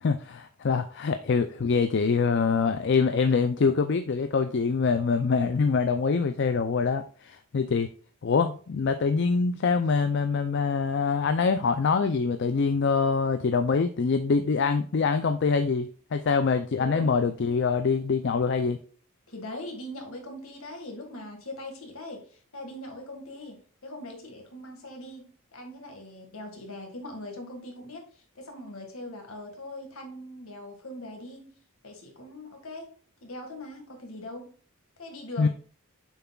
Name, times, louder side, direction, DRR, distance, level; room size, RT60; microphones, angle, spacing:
voice 1, 0.0-7.9 8.2-18.8 35.4-35.5, left 5 dB, 50° left, 8 dB, 0.4 m, -24 dB
voice 2, 16.8-17.1 19.3-31.5 31.8-34.5 35.0-35.5, left 1 dB, 70° left, 3 dB, 1.8 m, -41 dB
7.1 x 5.8 x 2.3 m, 0.41 s
head